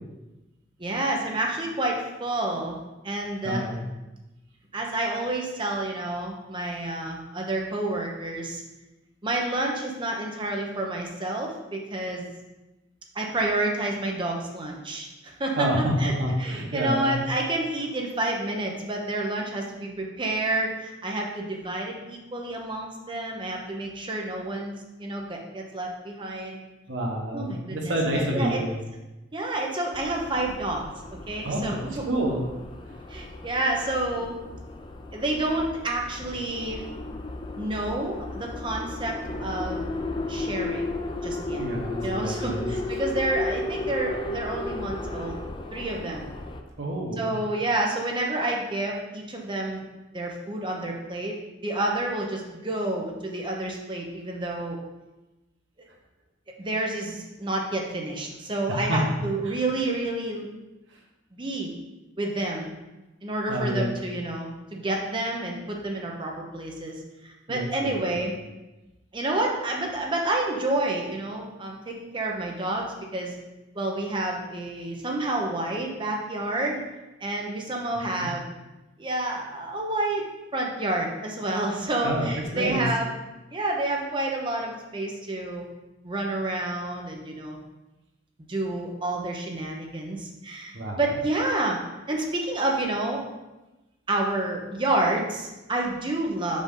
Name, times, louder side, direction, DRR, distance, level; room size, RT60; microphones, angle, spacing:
voice 1, 0.8-2.8 3.0-3.7 4.7-8.6 9.2-12.2 13.1-15.7 16.0-16.1 16.4-24.7 25.0-26.6 27.3-28.0 28.3-28.6 29.3-30.8 31.3-32.1 33.1-34.4 35.1-36.8 37.6-39.9 40.3-40.9 41.2-41.6 42.0-45.4 45.7-46.3 47.2-49.8 50.1-51.3 51.6-54.8 56.6-60.5 61.3-61.7 62.2-62.7 63.2-68.3 69.1-73.3 73.7-76.8 77.2-78.5 79.0-80.2 80.5-83.1 83.5-85.7 86.0-87.6 88.5-91.8 92.1-93.2 94.1-96.6, right 2 dB, 25° right, 0 dB, 0.8 m, -29 dB
voice 2, 3.4-3.8 15.6-17.2 26.9-28.7 31.4-31.8 32.1-32.4 41.5-42.7 46.8-47.3 58.7-59.6 63.5-64.0 67.5-68.2 78.2-78.3 82.0-82.9 90.7-91.0, equal, 85° right, 0 dB, 1.2 m, -28 dB
sound 1, 29.9-46.6, left 2 dB, 25° left, 0.4 m, -34 dB
5.2 x 5.2 x 3.8 m, 1.1 s
head